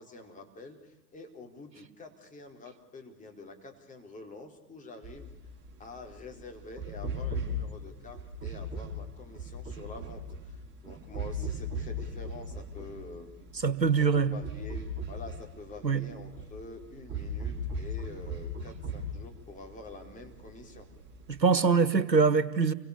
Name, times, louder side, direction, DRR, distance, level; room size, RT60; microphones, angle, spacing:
voice 1, 0.0-5.3 5.8-10.6 10.8-13.5 14.1-20.9, left 3 dB, 15° left, 3 dB, 4.5 m, -47 dB
sound 1, 5.0-21.4, equal, 20° right, 6.2 m, -39 dB
voice 2, 13.6-14.3 15.8-16.0 21.3-22.7, right 5 dB, 85° right, 15 dB, 1.5 m, -23 dB
29.5 x 24.0 x 7.0 m, 1.0 s
figure-of-eight pair, 95°, 50 cm